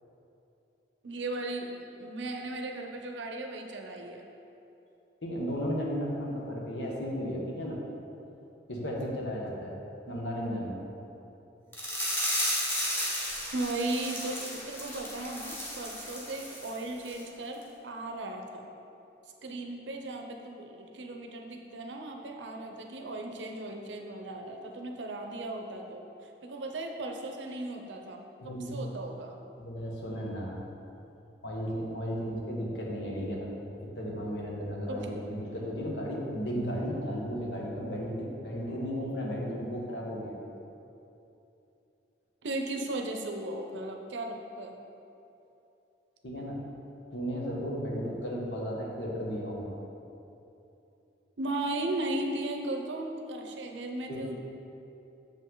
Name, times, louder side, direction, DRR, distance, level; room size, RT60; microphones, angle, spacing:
voice 1, 1.0-4.2 13.5-18.7 19.4-26.0 26.4-29.3 34.9-35.0 42.4-44.7 51.4-54.4, right 2 dB, 90° right, 3 dB, 0.7 m, -36 dB
voice 2, 5.2-7.8 8.7-9.7 10.1-10.8 28.4-28.9 29.6-30.6 31.4-33.5 33.9-40.3 46.2-46.6 47.1-49.7 54.1-54.2, equal, 80° left, -2 dB, 1.2 m, -34 dB
sound 1, 11.7-16.8 17.0-17.2 17.6-17.7, equal, 15° left, 1.1 m, -33 dB
6.8 x 5.4 x 3.8 m, 2.9 s
head